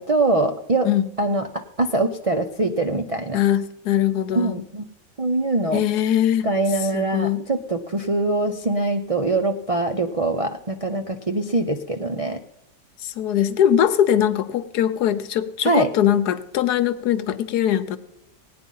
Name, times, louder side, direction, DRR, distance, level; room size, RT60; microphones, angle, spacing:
voice 1, 0.0-0.9 1.2-3.4 4.4-4.9 5.2-5.8 6.4-12.4 15.6-15.9, right 2 dB, 50° right, 6 dB, 0.4 m, -23 dB
voice 2, 3.3-4.6 5.7-6.5 6.8-7.5 13.0-18.0, left 10 dB, 80° left, 12 dB, 1.3 m, -21 dB
17.0 x 9.7 x 5.4 m, 0.91 s
omnidirectional pair, 1.7 m